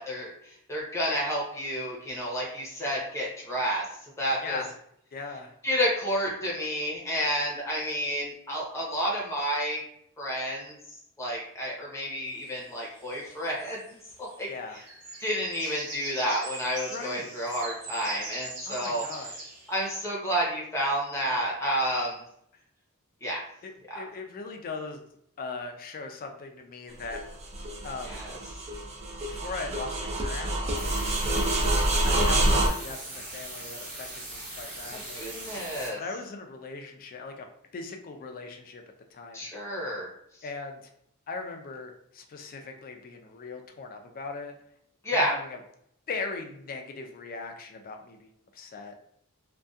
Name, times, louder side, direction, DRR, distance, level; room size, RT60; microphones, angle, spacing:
voice 1, 0.0-3.8 4.2-4.6 5.6-9.8 10.2-10.8 11.2-13.8 14.2-14.5 15.2-19.0 19.7-22.2 23.2-23.4 23.9-24.0 28.0-28.4 34.9-36.0 39.3-40.1 45.0-45.3, equal, 15° left, -4 dB, 0.7 m, -30 dB
voice 2, 4.4-4.8 5.1-5.6 14.5-14.8 16.9-17.7 18.7-19.4 23.6-25.0 25.4-27.2 27.8-28.2 29.3-30.9 32.0-35.4 36.0-37.5 37.7-38.8 39.1-39.5 40.4-40.9 41.3-44.5 45.1-45.6 46.1-48.9, left 4 dB, 40° left, 4 dB, 0.3 m, -39 dB
sound 1, 12.3-14.4 14.7-19.9, right 2 dB, 90° right, 0.8 m, -42 dB
sound 2, 27.0-32.7, right 1 dB, 30° right, 0.4 m, -27 dB
sound 3, 30.7-35.9, right 1 dB, 55° right, 1.3 m, -40 dB
2.6 x 2.2 x 2.3 m, 0.71 s
head